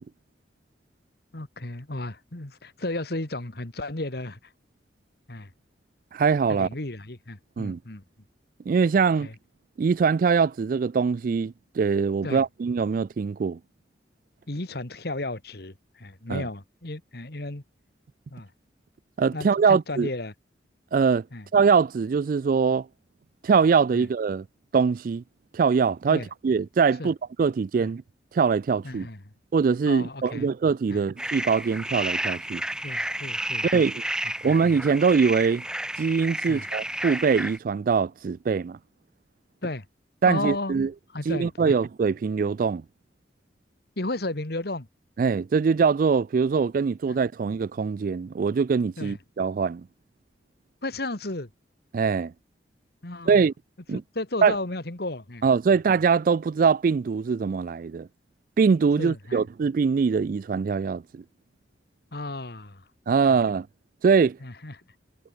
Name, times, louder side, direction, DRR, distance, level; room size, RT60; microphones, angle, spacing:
voice 1, 1.3-4.5 5.3-5.5 6.5-8.0 9.2-9.4 12.2-12.5 14.5-17.6 18.3-18.5 19.3-20.3 21.3-21.5 23.9-24.1 26.1-26.3 27.0-27.1 27.8-27.9 28.8-29.2 29.8-30.5 30.9-31.0 32.8-33.9 34.4-34.5 36.5-36.7 39.6-39.9 40.2-40.8 41.1-41.8 44.0-44.9 47.1-47.2 49.0-49.2 50.8-51.5 53.0-53.5 53.9-55.4 55.7-55.8 59.0-59.4 62.1-62.8 63.3-63.4 64.4-64.8, left 2 dB, 60° left, 1.9 m, -34 dB
voice 2, 6.1-6.7 7.6-7.8 8.7-9.3 9.8-13.6 16.3-16.4 19.2-20.1 20.9-21.2 21.5-22.9 23.4-24.4 24.7-25.2 25.5-28.0 28.3-29.1 29.5-32.6 33.7-34.0 34.4-35.6 36.0-38.8 40.2-40.9 41.3-42.8 45.2-49.8 51.9-52.3 53.3-53.5 53.9-54.0 54.4-54.5 55.4-58.1 58.6-61.2 63.1-63.7 64.0-64.4, right 5 dB, 50° right, 0.3 m, -23 dB
sound 1, 31.2-37.6, right 1 dB, 5° right, 2.4 m, -31 dB
head